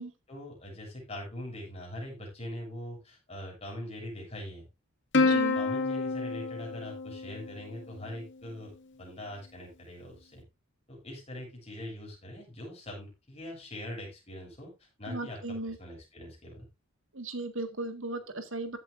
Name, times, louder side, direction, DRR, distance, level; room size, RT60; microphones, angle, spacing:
voice 1, 0.3-4.7 5.2-8.7 9.0-10.4 10.9-16.7, left 1 dB, 30° left, -1 dB, 6.8 m, -42 dB
Plucked string instrument, 5.1-7.9, left 3 dB, 55° left, 2.0 m, -28 dB
voice 2, 5.2-5.6 15.1-15.8 17.1-18.8, right 2 dB, 60° right, 8 dB, 1.9 m, -36 dB
15.0 x 8.3 x 2.6 m, 0.25 s
head